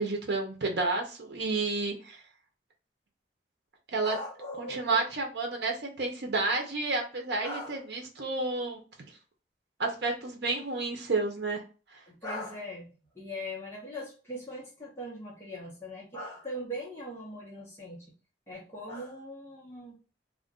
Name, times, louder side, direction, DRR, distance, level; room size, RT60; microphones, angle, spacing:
voice 1, 0.0-2.2 3.9-4.2 4.6-8.8 9.8-11.6 11.9-12.0, right 3 dB, 70° right, 2 dB, 0.7 m, -30 dB
voice 2, 4.0-5.1 7.4-7.8 12.1-18.0 18.5-20.0, left 1 dB, 15° left, -6 dB, 0.8 m, -40 dB
2.5 x 2.1 x 3.6 m, 0.35 s
head